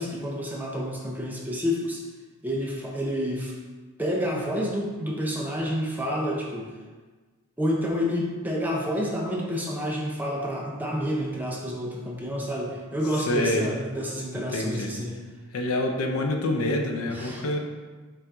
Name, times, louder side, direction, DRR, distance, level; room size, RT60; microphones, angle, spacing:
voice 1, 0.0-2.0 2.4-3.5 4.0-6.7 7.6-15.2 17.1-17.4, equal, 10° right, -2 dB, 0.6 m, -29 dB
voice 2, 13.3-13.7 14.5-14.9 15.5-17.6, left 1 dB, 80° left, 2 dB, 0.5 m, -26 dB
5.6 x 2.6 x 3.5 m, 1.4 s
head